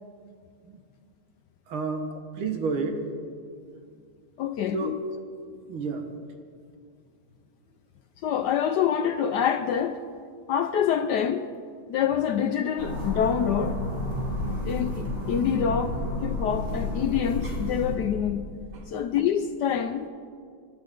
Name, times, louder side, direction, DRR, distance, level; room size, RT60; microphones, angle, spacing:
voice 1, 1.7-2.1 2.3-3.0 4.7-5.0 5.7-6.1 18.7-18.9, right 4 dB, 85° right, 2.3 m, -30 dB
voice 2, 4.4-5.0 8.2-10.0 10.5-11.5 11.9-13.8 14.6-18.5 18.9-20.1, left 8 dB, 70° left, 1.0 m, -26 dB
sound 1, 12.8-18.0, left 1 dB, 50° right, 4.1 m, -31 dB
27.5 x 11.5 x 3.8 m
omnidirectional pair, 2.3 m